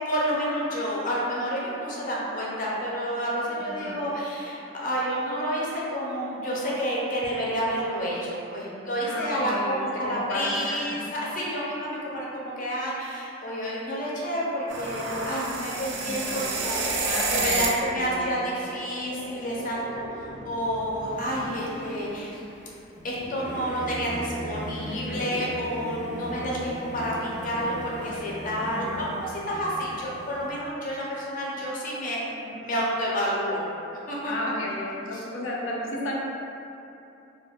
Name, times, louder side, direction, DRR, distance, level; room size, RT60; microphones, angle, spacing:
voice 1, 0.1-20.1 20.4-22.4 23.0-33.6 34.1-34.3, equal, 45° left, -5 dB, 0.5 m, -29 dB
voice 2, 3.6-4.0 9.1-11.0 16.0-16.5 17.0-17.7 17.9-18.6 24.7-25.3 28.6-29.1 34.3-36.1, left 1 dB, 90° left, -4 dB, 0.5 m, -34 dB
sound 1, 14.7-17.9 18.1-22.0, right 3 dB, 85° right, 0.4 m, -32 dB
Singing / Musical instrument, 21.0-30.6, equal, 5° right, 0.4 m, -38 dB
2.3 x 2.1 x 3.3 m, 2.7 s
head